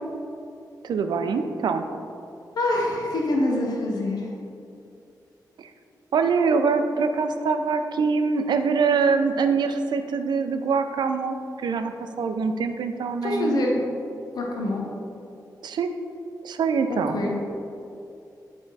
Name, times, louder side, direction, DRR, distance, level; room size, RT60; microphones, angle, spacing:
voice 1, 0.8-1.9 5.6-5.7 6.1-13.7 15.6-15.9 16.4-17.2, right 5 dB, 90° right, 7 dB, 0.4 m, -24 dB
voice 2, 2.5-4.3 13.2-13.8 14.3-14.9 16.9-17.3, left 1 dB, 65° left, -1 dB, 0.8 m, -25 dB
8.6 x 3.5 x 4.0 m, 2.6 s
wide cardioid pair, 165°, 7 cm